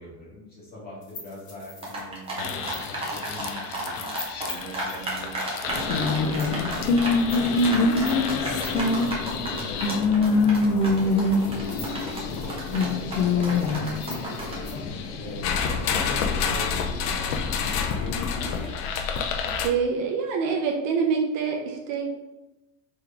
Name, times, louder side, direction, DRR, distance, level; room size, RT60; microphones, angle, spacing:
voice 1, 0.0-2.7 3.1-6.9 7.2-10.6 10.9-14.8 15.2-18.8 19.0-19.1, left 1 dB, 20° left, -6 dB, 1.4 m, -41 dB
sound 1, 1.0-14.7, left 4 dB, 50° left, 1.5 m, -45 dB
sound 2, 1.8-14.6, right 2 dB, 10° right, 0.6 m, -33 dB
sound 3, 2.4-19.7, left 4 dB, 70° left, 0.7 m, -26 dB
voice 2, 19.6-22.1, right 5 dB, 55° right, 1 dB, 0.7 m, -25 dB
3.8 x 3.1 x 3.3 m, 0.99 s
supercardioid pair, 160°, 47 cm